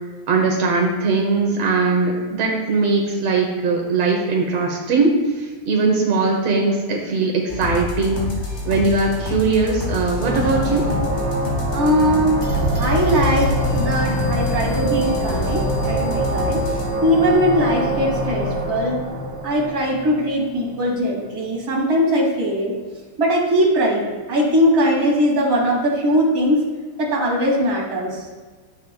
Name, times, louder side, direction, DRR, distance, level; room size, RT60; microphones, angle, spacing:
voice 1, 0.3-8.3 8.6-10.9, right 3 dB, 80° right, 0 dB, 1.4 m, -20 dB
sound 1, 7.5-16.8, left 2 dB, 65° left, 4.1 m, -28 dB
sound 2, 10.2-20.8, equal, 40° right, 2.8 m, -24 dB
voice 2, 11.7-12.3 12.8-16.6 17.0-19.0 19.4-22.7 23.2-26.6 27.0-28.2, equal, 25° right, -4 dB, 2.7 m, -20 dB
13.5 x 8.2 x 2.3 m, 1.4 s
omnidirectional pair, 4.5 m